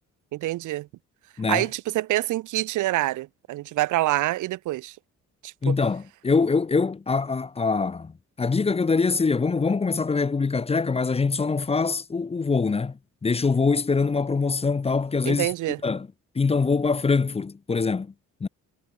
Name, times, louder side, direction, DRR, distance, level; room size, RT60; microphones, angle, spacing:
voice 1, 0.3-0.9 1.5-5.0 5.4-5.8 15.3-15.8, right 16 dB, 80° right, 0.8 m, -26 dB
voice 2, 5.6-8.1 8.4-15.5 15.8-16.1 16.3-18.1 18.4-18.5, left 4 dB, 20° left, 0.6 m, -24 dB
cardioid pair, 90°, 30 cm